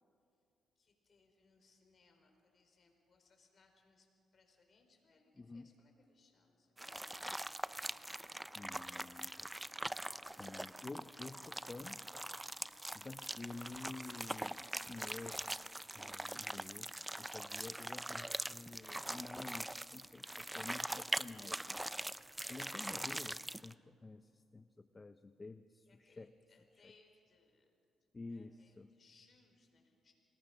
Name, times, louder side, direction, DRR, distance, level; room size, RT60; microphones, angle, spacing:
voice 1, 0.8-7.2 25.9-27.7 28.3-30.1, left 3 dB, 50° left, 4 dB, 4.9 m, -70 dB
voice 2, 5.4-5.7 8.5-9.5 10.4-12.1 12.9-15.4 15.9-21.6 22.5-26.3 26.8-26.9 28.1-28.9, left 3 dB, 30° left, 11 dB, 0.7 m, -50 dB
sound 1, 6.8-23.7, right 1 dB, 10° right, 0.6 m, -43 dB
28.5 x 20.0 x 6.2 m, 2.5 s
supercardioid pair, 65°, 0 cm